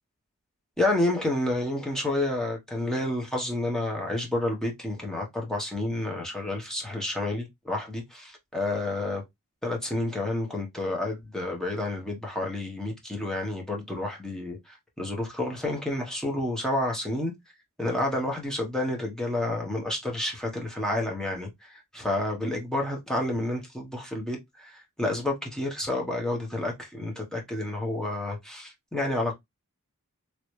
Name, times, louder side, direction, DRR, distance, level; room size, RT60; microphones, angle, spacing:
voice 1, 0.8-9.2 9.6-17.3 17.8-29.3, left 1 dB, 5° left, 1.1 m, -30 dB
3.1 x 3.0 x 3.1 m
head